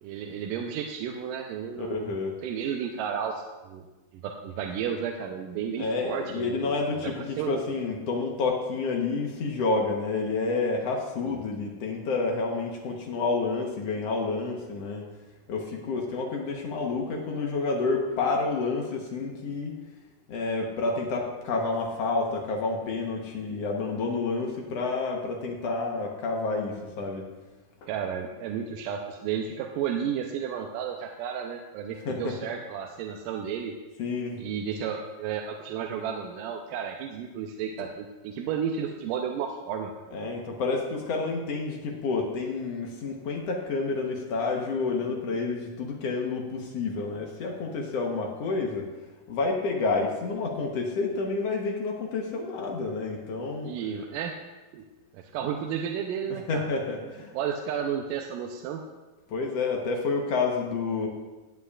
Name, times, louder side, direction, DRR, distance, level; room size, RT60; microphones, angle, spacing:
voice 1, 0.0-2.1 2.4-3.9 4.2-6.7 7.0-7.1 7.4-7.6 11.3-11.4 27.9-33.7 34.4-39.9 53.6-54.3 54.7-54.8 55.1-56.7 57.3-58.8, right 8 dB, 85° right, 2 dB, 2.2 m, -32 dB
voice 2, 1.8-2.4 5.8-15.1 15.5-19.7 20.3-27.2 27.8-27.9 32.1-32.4 34.0-34.4 40.1-48.9 49.3-53.7 56.3-57.3 59.3-61.1, left 3 dB, 60° left, 1 dB, 1.8 m, -29 dB
18.5 x 7.7 x 2.4 m, 1.2 s
omnidirectional pair, 3.8 m